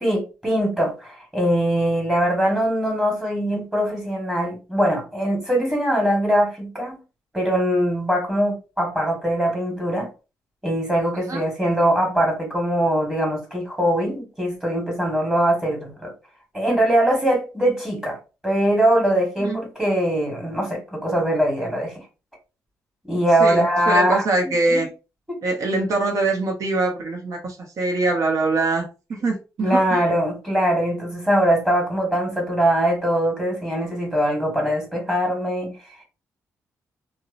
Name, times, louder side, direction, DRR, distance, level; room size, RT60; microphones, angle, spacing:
voice 1, 0.0-7.0 7.3-10.1 10.6-16.1 16.5-18.2 18.4-22.0 23.0-24.2 24.7-24.9 29.6-35.9, right 1 dB, 10° right, 1.3 m, -22 dB
voice 2, 23.4-24.9 25.4-30.1, right 2 dB, 60° right, 0.8 m, -23 dB
2.7 x 2.0 x 2.5 m
cardioid pair, 75°, 6 cm